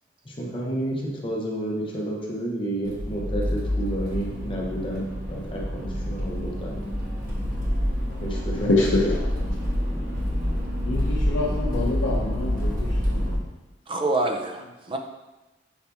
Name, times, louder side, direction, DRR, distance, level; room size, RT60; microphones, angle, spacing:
voice 1, 0.3-6.8 8.2-9.1, right 1 dB, 25° left, -2 dB, 0.8 m, -31 dB
Accelerating revving vroom, 2.8-13.4, equal, 50° right, 1.3 m, -27 dB
voice 2, 8.5-9.4 10.8-13.4 14.4-14.5, left 2 dB, 80° left, -3 dB, 0.6 m, -26 dB
voice 3, 13.9-15.0, right 2 dB, 25° right, 3 dB, 0.4 m, -26 dB
5.7 x 2.8 x 3.4 m, 1.1 s
head